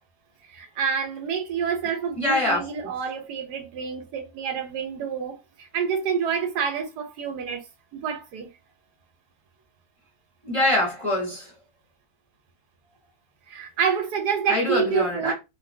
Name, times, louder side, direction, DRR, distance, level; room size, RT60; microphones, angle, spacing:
voice 1, 0.5-7.6 7.9-8.5 13.5-15.3, right 7 dB, 90° right, 1.3 m, -28 dB
voice 2, 2.2-2.9 10.4-11.5 14.5-15.3, left 1 dB, 25° left, 0.8 m, -24 dB
3.0 x 2.6 x 2.6 m
omnidirectional pair, 1.7 m